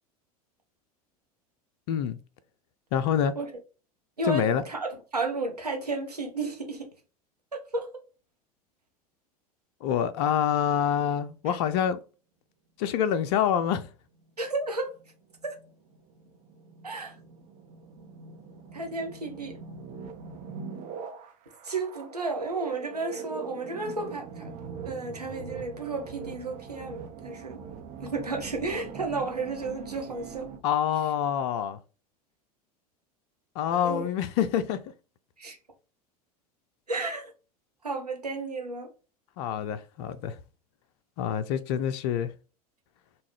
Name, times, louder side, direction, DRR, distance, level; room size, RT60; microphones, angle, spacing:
voice 1, 1.9-2.2 2.9-3.3 4.2-4.6 9.8-12.0 12.8-13.9 30.6-31.8 33.6-34.8 39.4-40.4 41.2-42.3, left 9 dB, 45° left, 0.4 m, -26 dB
voice 2, 4.2-6.9 7.7-7.9 14.4-14.9 15.4-15.6 16.8-17.1 18.7-19.6 21.6-24.5 24.8-27.6 28.0-30.5 33.8-34.1 35.4-35.6 36.9-37.3 37.8-38.9, right 3 dB, 85° right, 0.8 m, -32 dB
sound 1, 14.1-30.6, right 6 dB, 40° right, 0.8 m, -42 dB
3.6 x 2.3 x 3.0 m
figure-of-eight pair, 80°, 20 cm